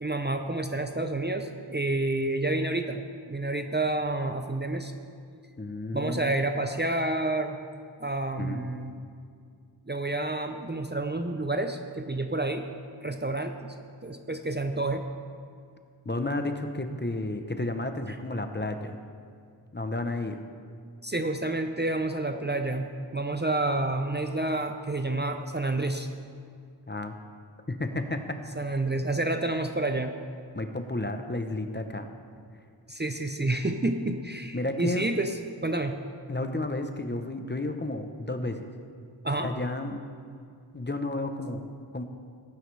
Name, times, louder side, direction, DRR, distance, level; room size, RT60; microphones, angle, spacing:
voice 1, 0.0-4.9 5.9-7.6 8.0-9.0 9.9-12.7 13.0-13.7 14.0-15.1 21.0-26.1 28.6-30.2 32.9-36.0 39.2-39.5, right 2 dB, 25° right, 6 dB, 0.6 m, -29 dB
voice 2, 5.6-6.4 8.4-8.6 16.0-19.0 19.7-20.4 26.9-27.2 27.7-28.4 28.7-28.8 30.5-32.1 34.5-35.1 36.3-38.6 39.4-40.0 40.7-42.0, left 2 dB, 25° left, 6 dB, 0.8 m, -32 dB
17.5 x 9.4 x 3.3 m, 2.2 s
wide cardioid pair, 60°, 45 cm